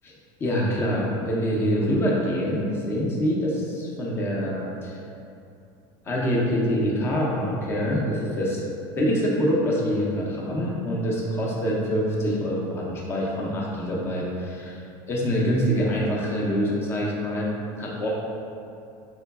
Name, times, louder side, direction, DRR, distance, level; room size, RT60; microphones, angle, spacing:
voice 1, 0.4-5.0 6.1-8.6 9.0-14.8 15.1-17.5 17.8-18.1, equal, 20° left, -3 dB, 0.5 m, -25 dB
3.8 x 3.3 x 2.3 m, 2.6 s
cardioid pair, 165°, 12 cm